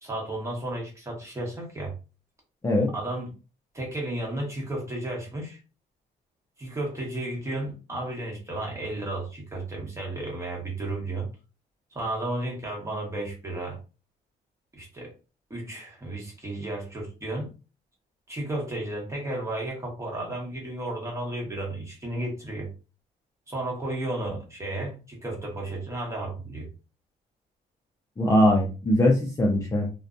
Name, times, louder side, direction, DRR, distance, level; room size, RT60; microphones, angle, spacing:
voice 1, 0.0-1.9 2.9-3.3 3.7-5.6 6.6-11.3 11.9-13.8 14.7-15.1 15.5-17.5 18.3-22.7 23.5-26.7, right 1 dB, 15° right, -1 dB, 1.2 m, -33 dB
voice 2, 28.2-29.9, left 1 dB, 20° left, 0 dB, 0.5 m, -21 dB
2.5 x 2.2 x 2.5 m, 0.32 s
cardioid pair, 110°, 17 cm